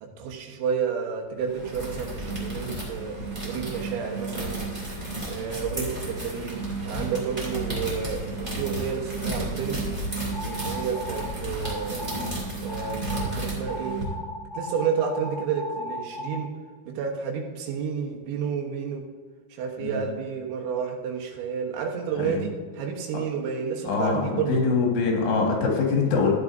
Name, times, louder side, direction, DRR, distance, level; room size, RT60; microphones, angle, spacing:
voice 1, 0.0-3.2 3.4-4.6 5.3-9.9 10.5-12.1 12.6-13.9 14.6-16.5 17.0-19.0 19.5-24.8 26.2-26.3, right 6 dB, 80° right, 1 dB, 3.5 m, -30 dB
sound 1, 1.4-14.0, right 2 dB, 15° right, 2.1 m, -32 dB
sound 2, 10.3-11.3 11.6-12.3 12.7-13.3 13.7-16.4, left 1 dB, 25° left, 3.6 m, -36 dB
voice 2, 23.9-26.3, left 4 dB, 80° left, -1 dB, 4.0 m, -24 dB
14.5 x 9.6 x 2.6 m, 1.5 s
omnidirectional pair, 5.2 m